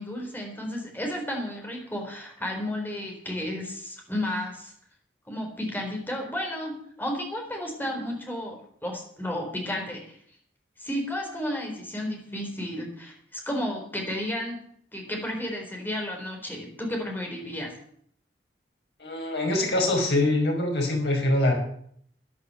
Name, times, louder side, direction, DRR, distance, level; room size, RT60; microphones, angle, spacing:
voice 1, 0.0-4.7 5.3-10.2 10.8-14.6 14.9-17.7, left 1 dB, 10° left, 1 dB, 3.8 m, -32 dB
voice 2, 19.0-21.5, left 1 dB, 70° left, 0 dB, 5.9 m, -24 dB
12.0 x 10.5 x 7.6 m, 0.65 s
head